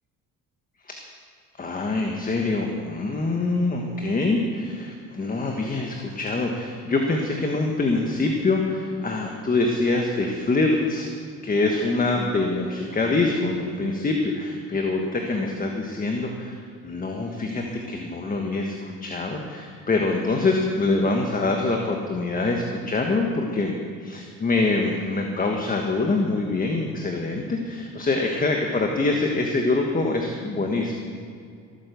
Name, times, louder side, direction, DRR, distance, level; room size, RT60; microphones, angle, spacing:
voice 1, 1.6-11.1 11.4-16.5 16.8-23.7 24.0-30.9, left 3 dB, 25° left, 2 dB, 1.4 m, -25 dB
16.0 x 9.4 x 6.9 m, 2.4 s
cardioid pair, 110°, 34 cm